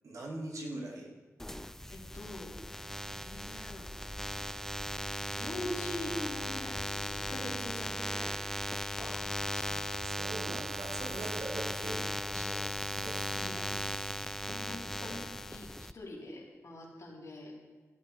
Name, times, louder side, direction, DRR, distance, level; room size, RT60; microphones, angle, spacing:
voice 1, 0.0-1.1 9.0-9.2 10.0-13.7 15.0-15.3, right 1 dB, 90° right, -1 dB, 2.6 m, -43 dB
sound 1, 1.4-15.9, left 1 dB, 5° left, 0.5 m, -37 dB
voice 2, 1.9-2.5 3.2-3.8 5.4-8.4 9.5-9.6 13.4-13.6 14.5-15.7 15.9-17.5, left 1 dB, 75° left, -4 dB, 4.4 m, -43 dB
15.5 x 12.0 x 4.9 m, 1.3 s
wide cardioid pair, 90°, 5 cm